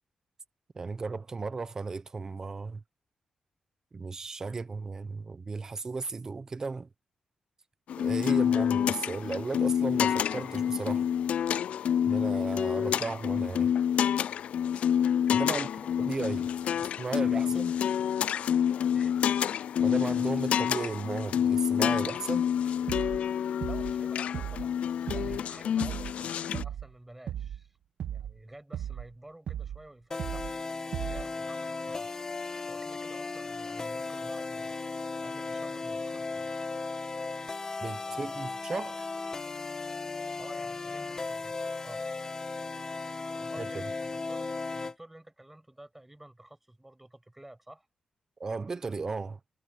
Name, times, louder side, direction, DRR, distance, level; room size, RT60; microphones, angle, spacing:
voice 1, 0.8-2.8 3.9-6.9 8.0-11.1 12.0-13.7 15.3-15.7 16.0-16.5 17.0-17.7 19.8-22.4 37.8-39.1 48.4-49.4, right 4 dB, 25° right, 0.7 m, -35 dB
sound 1, 7.9-26.6, left 9 dB, 70° left, 0.3 m, -28 dB
voice 2, 15.5-16.4 16.7-17.6 18.9-19.2 23.6-27.8 28.1-30.5 31.0-32.3 32.7-34.7 35.2-36.5 38.1-38.5 40.4-41.5 41.8-42.0 43.4-47.9, right 1 dB, 10° right, 6.9 m, -51 dB
sound 2, 22.9-23.3 23.6-24.0 24.3-24.7 25.1-25.4 25.8-26.2 26.5-26.9 27.3-27.6 28.0-28.4 28.7-29.1 29.5-29.8 30.2-30.6 30.9-31.3, right 10 dB, 75° right, 1.0 m, -36 dB
sound 3, 30.1-44.9, left 3 dB, 25° left, 1.4 m, -36 dB
wide cardioid pair, 175°, 2 cm